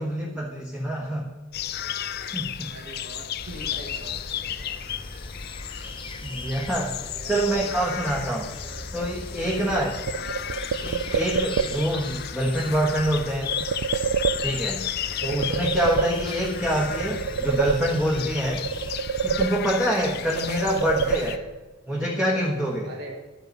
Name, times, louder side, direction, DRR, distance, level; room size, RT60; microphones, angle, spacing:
voice 1, 0.0-1.3 2.3-2.7 6.2-7.0 7.3-8.5 8.9-9.9 10.8-13.5 14.4-14.9 15.2-18.6 19.2-21.4 21.9-22.9, right 1 dB, 5° right, -3 dB, 1.3 m, -26 dB
sound 1, 1.5-21.4, left 10 dB, 50° left, 0.5 m, -34 dB
voice 2, 2.7-4.8 7.1-8.0 8.6-8.9 9.6-10.6 20.2-20.5 22.8-23.1, right 1 dB, 50° right, 1 dB, 1.3 m, -43 dB
sound 2, 3.4-19.0, left 2 dB, 25° left, 0.9 m, -39 dB
sound 3, 10.1-12.0 13.5-14.9 15.2-16.6 16.9-18.3 18.6-20.0 20.3-21.7, right 7 dB, 85° right, 0.4 m, -28 dB
12.0 x 8.9 x 5.4 m, 1.2 s
head